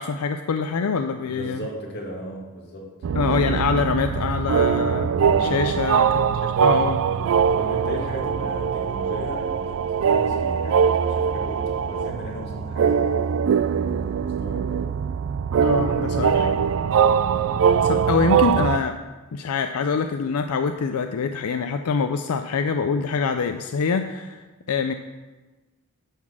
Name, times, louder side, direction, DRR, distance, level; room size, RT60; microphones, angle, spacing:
voice 1, 0.0-1.6 3.1-5.1 5.4-7.0 15.6-16.7 17.8-19.0 19.3-24.9, left 5 dB, 85° left, 8 dB, 0.4 m, -25 dB
voice 2, 1.3-2.9 5.3-5.7 7.5-14.9, equal, 50° left, -2 dB, 2.2 m, -36 dB
sound 1, 3.0-18.8, right 7 dB, 65° right, 0.3 m, -22 dB
10.5 x 4.2 x 7.3 m, 1.2 s
head